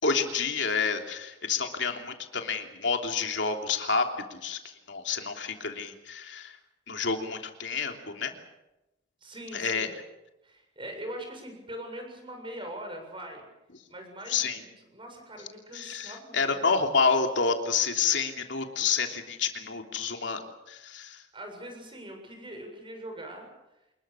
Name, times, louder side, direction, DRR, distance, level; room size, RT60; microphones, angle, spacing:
voice 1, 0.0-4.6 4.9-6.5 6.9-8.3 9.5-9.9 14.3-14.6 15.7-21.2, left 5 dB, 70° left, 4 dB, 3.2 m, -29 dB
voice 2, 9.2-10.0 10.4-13.5 13.9-16.7 21.3-23.5, right 1 dB, 25° right, 4 dB, 7.3 m, -42 dB
27.0 x 21.0 x 7.3 m, 0.96 s
head